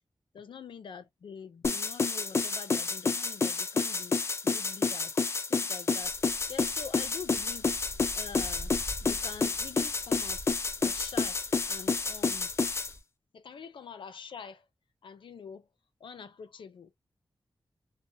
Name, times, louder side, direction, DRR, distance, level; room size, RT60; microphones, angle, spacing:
voice 1, 0.3-5.1 5.5-6.2 6.5-7.7 8.1-8.7 9.0-10.5 10.8-12.5 13.3-14.7 15.0-15.7 16.0-17.0, left 6 dB, 80° left, 0.6 m, -45 dB
sound 1, 1.6-12.9, left 4 dB, 35° left, 0.3 m, -29 dB
sound 2, 6.0-13.0, equal, 20° right, 1.1 m, -47 dB
2.7 x 2.1 x 2.7 m
wide cardioid pair, 150°, 8 cm